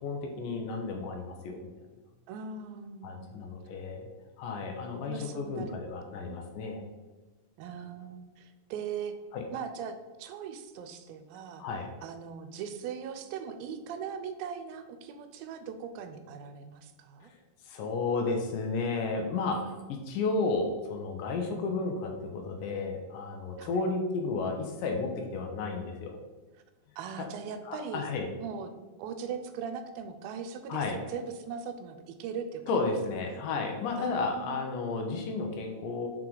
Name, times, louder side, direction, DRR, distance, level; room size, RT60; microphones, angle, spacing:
voice 1, 0.0-1.7 3.0-4.1 4.4-6.8 9.3-9.5 11.6-11.9 17.6-26.2 27.2-27.3 27.7-28.3 30.7-31.0 32.7-36.1, left 3 dB, 75° left, 3 dB, 2.2 m, -32 dB
voice 2, 2.3-3.3 5.0-5.8 6.3-6.4 7.6-9.1 9.5-11.7 12.0-17.3 21.4-21.8 23.6-23.9 27.0-28.0 28.4-28.7 29.0-32.6 33.3-33.4 34.0-34.7, right 6 dB, 85° right, 9 dB, 2.4 m, -40 dB
5.8 x 4.6 x 3.8 m, 1.3 s
omnidirectional pair, 4.1 m